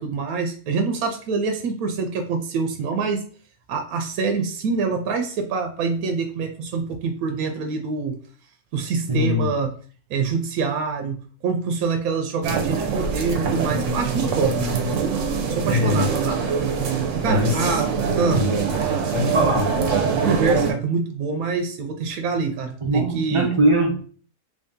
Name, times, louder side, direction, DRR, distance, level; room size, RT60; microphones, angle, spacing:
voice 1, 0.0-3.2 3.7-8.2 8.7-9.7 10.1-15.3 15.6-16.4 17.2-18.5 20.1-23.5, right 4 dB, 90° right, 5 dB, 1.1 m, -25 dB
voice 2, 9.1-9.5 15.7-16.1 17.2-17.8 18.3-18.5 19.1-19.7 22.8-24.1, equal, 35° right, -1 dB, 0.6 m, -22 dB
sound 1, 12.4-20.7, right 5 dB, 65° right, 1.0 m, -23 dB
3.3 x 2.7 x 3.5 m, 0.42 s
omnidirectional pair, 1.5 m